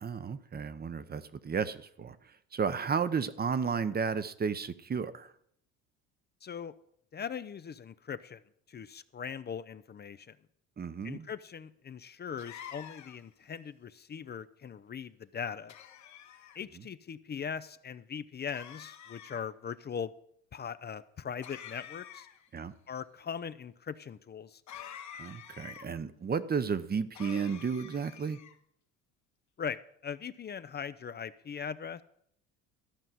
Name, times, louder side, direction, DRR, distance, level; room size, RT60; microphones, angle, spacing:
voice 1, 0.0-2.2 2.5-5.3 10.8-11.3 22.5-22.7 25.2-28.4, right 6 dB, 25° right, 13 dB, 0.8 m, -33 dB
voice 2, 6.4-6.7 7.1-8.4 8.7-10.4 11.0-15.7 16.5-20.1 20.5-22.3 22.9-24.6 29.6-32.0, left 7 dB, 25° left, 14 dB, 0.5 m, -40 dB
sound 1, 12.4-13.3 15.7-16.6 18.5-19.4 21.4-22.5 24.7-25.9 27.1-28.6, left 9 dB, 50° left, 1.1 m, -48 dB
13.5 x 5.5 x 7.6 m, 0.68 s
supercardioid pair, 85°, 37 cm